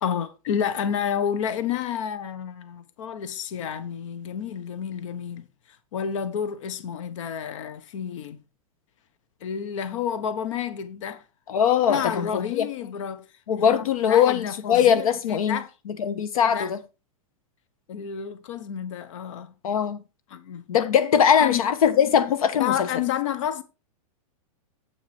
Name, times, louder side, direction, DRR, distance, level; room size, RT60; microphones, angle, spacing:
voice 1, 0.0-5.5 5.9-8.4 9.4-11.2 11.9-13.3 13.6-15.7 16.4-16.7 17.9-19.5 20.3-20.6 21.4-21.6 22.6-23.6, left 8 dB, 60° left, 1.1 m, -30 dB
voice 2, 11.5-12.7 13.5-15.6 16.0-16.8 19.6-20.0 20.7-22.9, left 8 dB, 80° left, 1.2 m, -21 dB
8.5 x 6.2 x 4.3 m
supercardioid pair, 160°, 18 cm